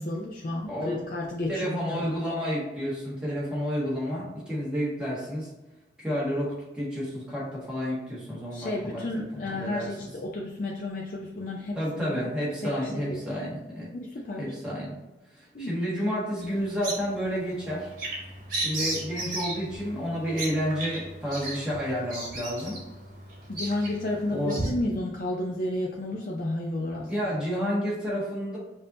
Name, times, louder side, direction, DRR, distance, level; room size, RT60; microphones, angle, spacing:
voice 1, 0.0-2.2 8.5-12.3 12.6-12.7 13.1-13.2 13.9-14.5 15.5-15.8 23.5-27.1, left 1 dB, 50° left, -3 dB, 0.5 m, -32 dB
voice 2, 0.7-1.0 1.5-5.5 6.0-9.1 9.4-9.9 11.7-13.9 14.4-14.9 15.3-17.9 18.6-22.8 24.3-24.6 27.1-28.6, equal, 5° right, -7 dB, 1.5 m, -30 dB
Bird vocalization bird call bird song, 16.4-24.7, right 2 dB, 50° right, 1.5 m, -35 dB
5.2 x 2.7 x 2.7 m, 1.0 s
head